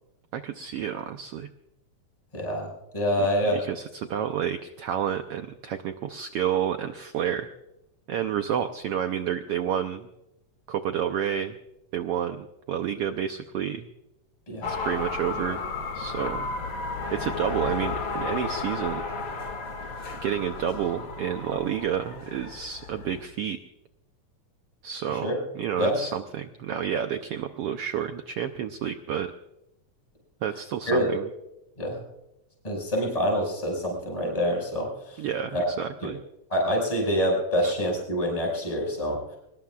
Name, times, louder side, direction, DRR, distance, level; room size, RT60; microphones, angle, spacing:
voice 1, 0.3-1.5 3.4-7.5 8.1-10.1 10.7-11.5 11.9-13.9 14.7-15.6 15.9-16.5 17.1-19.1 20.2-23.6 24.8-29.3 30.4-31.3 35.2-36.2 37.6-37.8, right 9 dB, 85° right, 7 dB, 1.3 m, -30 dB
voice 2, 2.3-3.6 14.5-14.7 25.2-25.4 25.8-26.0 30.9-31.1 31.8-32.0 32.6-35.2 35.5-35.7 36.0-36.1 36.5-39.2, equal, 10° left, 0 dB, 5.5 m, -26 dB
sound 1, 14.6-23.2, left 4 dB, 45° left, 2.4 m, -33 dB
25.0 x 20.5 x 2.4 m, 0.88 s
omnidirectional pair, 3.6 m